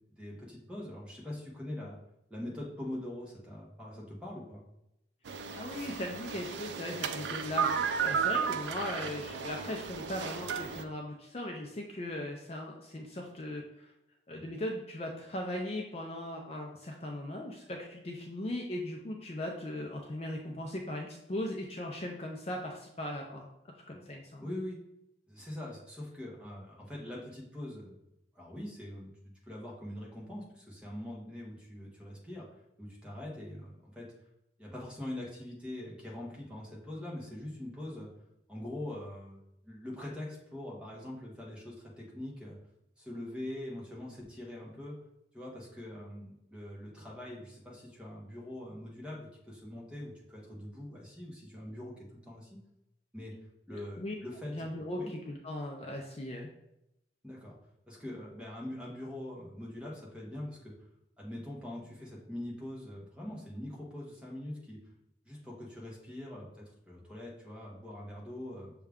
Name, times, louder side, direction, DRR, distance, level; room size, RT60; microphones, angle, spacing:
voice 1, 0.2-2.0 2.3-4.6 24.4-24.8 25.3-27.9 28.3-32.5 32.8-34.1 34.6-38.1 38.5-42.6 43.0-45.0 45.3-52.6 53.1-53.3 53.7-54.5 55.0-55.1 57.2-57.6 57.9-60.7 61.2-64.8 65.3-68.7, left 1 dB, 5° right, -4 dB, 0.9 m, -43 dB
sound 1, 5.3-10.8, right 6 dB, 75° right, 0.3 m, -34 dB
voice 2, 5.5-13.9 14.3-23.5 23.9-24.5 53.7-54.1 54.5-56.5, left 1 dB, 35° left, 1 dB, 0.4 m, -38 dB
6.4 x 2.3 x 3.5 m, 0.86 s
head